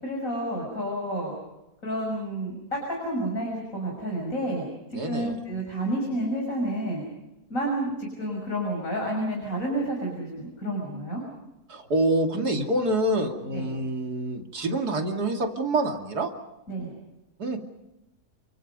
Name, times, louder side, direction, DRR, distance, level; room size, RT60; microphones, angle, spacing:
voice 1, 0.0-1.3 1.8-4.6 5.1-7.0 7.5-11.2 13.5-13.7 16.7-16.9, right 1 dB, 55° left, -1 dB, 6.6 m, -30 dB
voice 2, 4.9-5.3 11.7-16.3 17.4-17.6, right 1 dB, 80° right, 3 dB, 3.2 m, -26 dB
29.5 x 24.5 x 5.4 m, 0.95 s
omnidirectional pair, 1.7 m